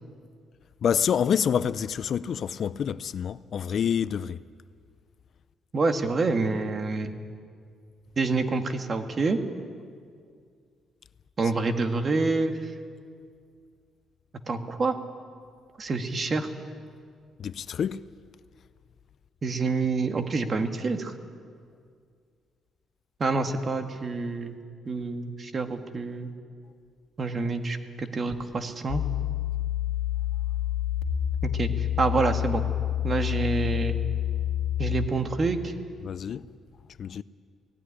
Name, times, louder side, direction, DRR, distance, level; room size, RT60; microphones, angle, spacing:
voice 1, 0.8-4.4 17.4-18.0 36.0-36.4 37.0-37.2, left 8 dB, 60° left, 0.5 m, -27 dB
voice 2, 5.7-7.1 8.2-9.4 11.4-12.7 14.5-15.0 15.8-16.5 19.4-21.1 23.2-24.5 24.9-26.3 27.2-29.0 31.4-32.6 33.0-34.0 34.8-35.7, right 3 dB, 40° right, 1.8 m, -27 dB
sound 1, 28.9-35.1, left 11 dB, 90° left, 1.7 m, -28 dB
18.5 x 15.5 x 9.9 m
cardioid pair, 90°, 0 cm